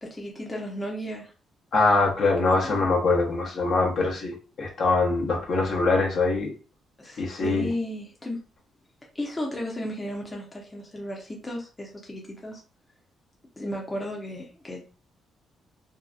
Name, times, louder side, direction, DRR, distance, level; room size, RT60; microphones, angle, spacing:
voice 1, 0.0-1.3 2.5-2.8 7.0-8.4 9.1-12.6 13.6-14.9, left 1 dB, 20° left, -1 dB, 0.7 m, -34 dB
voice 2, 1.7-6.5 7.2-7.7, left 3 dB, 60° left, -1 dB, 0.9 m, -23 dB
2.7 x 2.2 x 2.3 m, 0.35 s
cardioid pair, 90°, 0 cm